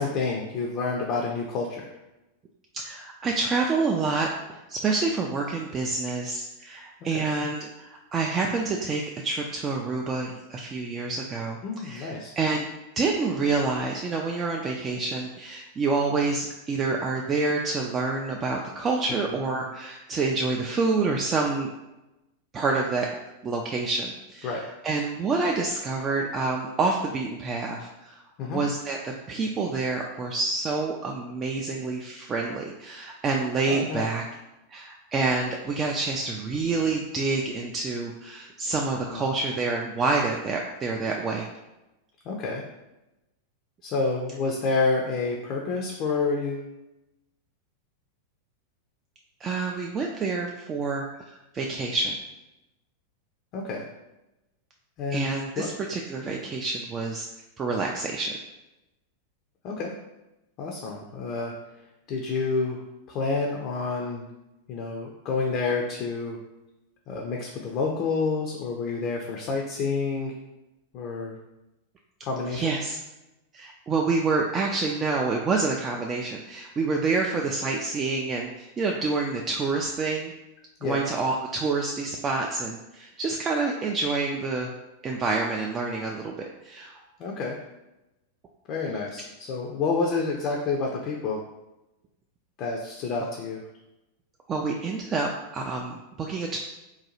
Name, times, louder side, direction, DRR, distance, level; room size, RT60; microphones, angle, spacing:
voice 1, 0.0-1.9 7.1-7.3 11.6-12.3 19.3-19.4 24.4-24.6 28.4-28.6 33.7-34.1 39.1-39.3 42.3-42.6 43.8-46.7 53.5-53.8 55.0-55.3 55.6-55.7 59.6-59.9 60.6-61.5 62.1-62.8 63.1-64.3 64.7-66.4 67.1-70.3 70.9-71.4 72.2-72.8 80.8-81.0 87.2-87.6 88.7-91.4 92.6-93.6, left 4 dB, 40° left, 0 dB, 0.5 m, -29 dB
voice 2, 2.7-12.7 13.0-21.7 22.5-23.1 23.4-28.2 28.5-34.2 34.7-41.5 49.4-52.2 55.1-57.3 57.6-58.3 72.5-73.0 73.5-80.3 80.8-84.7 85.0-86.9 94.5-96.6, right 3 dB, 25° right, 0 dB, 0.3 m, -28 dB
3.8 x 2.2 x 2.9 m, 0.96 s
figure-of-eight pair, 90°, 0 cm